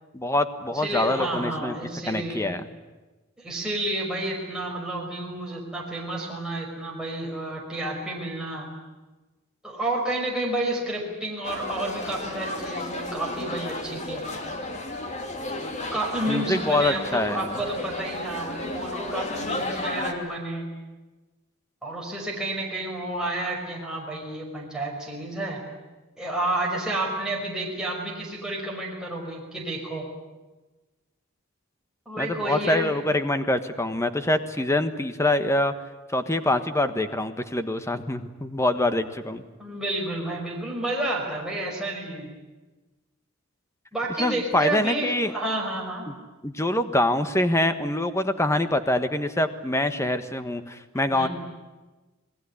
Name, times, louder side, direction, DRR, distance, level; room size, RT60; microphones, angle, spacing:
voice 1, 0.1-1.8 2.1-2.7 16.3-17.5 32.2-35.7 36.1-39.4 44.2-45.3 46.1-46.2 46.4-51.3, left 1 dB, 15° left, 10 dB, 1.3 m, -25 dB
voice 2, 0.7-2.5 3.4-8.7 9.6-14.2 15.9-20.7 21.8-25.6 26.2-30.1 32.1-33.0 39.6-42.3 43.9-46.1 51.1-51.3, right 1 dB, 5° right, -3 dB, 5.5 m, -30 dB
sound 1, 11.4-20.1, left 2 dB, 35° left, 2.8 m, -33 dB
28.0 x 19.5 x 9.9 m, 1.2 s
head